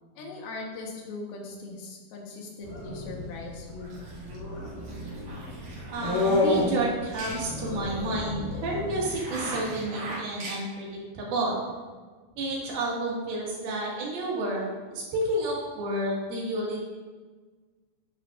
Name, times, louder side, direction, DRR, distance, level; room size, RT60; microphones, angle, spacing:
voice 1, 0.2-4.0, left 3 dB, 85° left, 0 dB, 3.2 m, -40 dB
sound 1, 2.6-9.0, left 2 dB, 60° left, 3.8 m, -30 dB
sound 2, 2.8-3.5 3.8-10.2, right 2 dB, 65° right, 3.4 m, -42 dB
voice 2, 5.9-11.6 12.4-16.8, right 1 dB, 85° right, -4 dB, 3.9 m, -30 dB
sound 3, 6.0-6.4 7.0-7.4 9.2-9.6 10.2-10.6, right 2 dB, 50° right, 3.3 m, -42 dB
10.0 x 9.0 x 2.5 m, 1.4 s
omnidirectional pair, 4.2 m